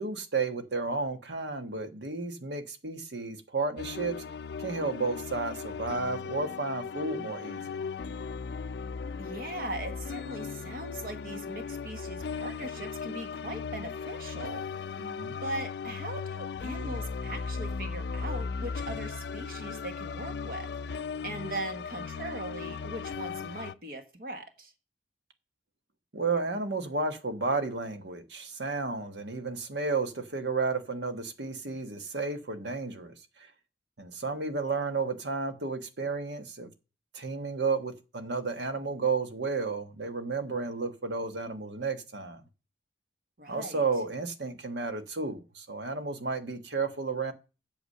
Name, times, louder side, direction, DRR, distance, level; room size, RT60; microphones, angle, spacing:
voice 1, 0.0-4.1 4.6-7.8 15.0-15.4 26.1-33.5 34.0-36.7 37.1-42.4 43.5-47.3, right 4 dB, 80° right, 1.3 m, -32 dB
sound 1, 3.8-23.7, left 5 dB, 65° left, 0.4 m, -37 dB
voice 2, 9.2-14.7 15.4-24.7 43.4-43.8, right 1 dB, 55° right, 1.3 m, -40 dB
8.3 x 7.0 x 6.6 m
head